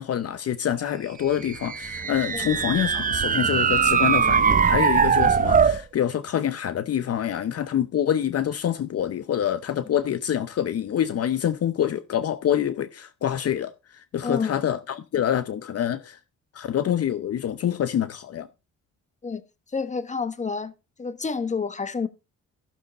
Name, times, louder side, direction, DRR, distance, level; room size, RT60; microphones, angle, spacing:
voice 1, 0.0-16.2 16.5-18.5, left 10 dB, 55° left, 0.8 m, -26 dB
sound 1, 1.4-5.8, right 6 dB, 30° right, 0.7 m, -21 dB
voice 2, 14.2-14.6 19.2-19.4 19.7-20.7 21.0-22.1, left 5 dB, 25° left, 1.2 m, -29 dB
14.5 x 6.4 x 4.1 m
cardioid pair, 90°, 30 cm